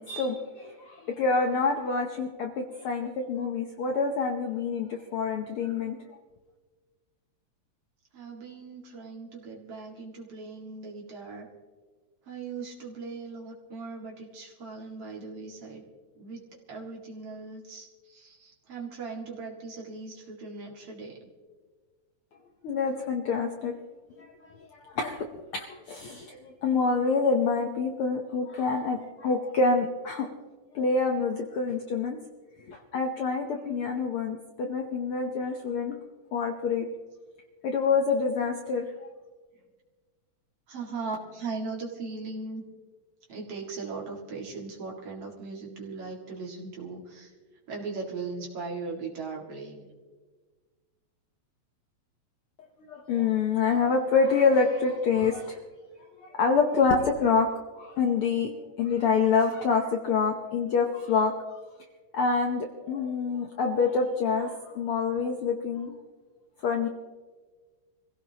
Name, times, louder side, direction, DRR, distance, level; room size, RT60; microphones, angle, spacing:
voice 1, 0.0-6.0 22.6-23.7 24.2-30.3 30.7-32.2 32.7-35.9 36.3-36.9 37.6-38.9 52.9-55.6 56.2-57.5 57.8-61.4 62.1-65.9 66.6-66.9, left 4 dB, 65° left, 2 dB, 1.4 m, -27 dB
voice 2, 8.1-11.5 12.3-15.8 16.1-16.4 16.7-21.2 40.7-42.6 43.3-47.3 47.7-49.9, right 4 dB, 55° right, -1 dB, 2.9 m, -38 dB
26.5 x 16.5 x 2.9 m, 1.4 s
omnidirectional pair, 3.4 m